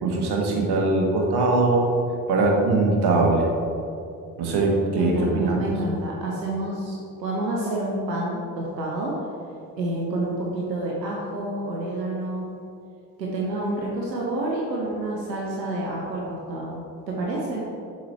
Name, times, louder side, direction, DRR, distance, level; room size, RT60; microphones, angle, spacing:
voice 1, 0.0-1.9 2.3-3.5 4.4-5.7, right 2 dB, 50° right, -1 dB, 1.5 m, -21 dB
voice 2, 4.9-9.2 9.8-12.5 13.2-16.8 17.1-17.6, right 1 dB, 90° right, -3 dB, 0.8 m, -28 dB
7.4 x 4.2 x 4.4 m, 2.5 s
figure-of-eight pair, 50°, 49 cm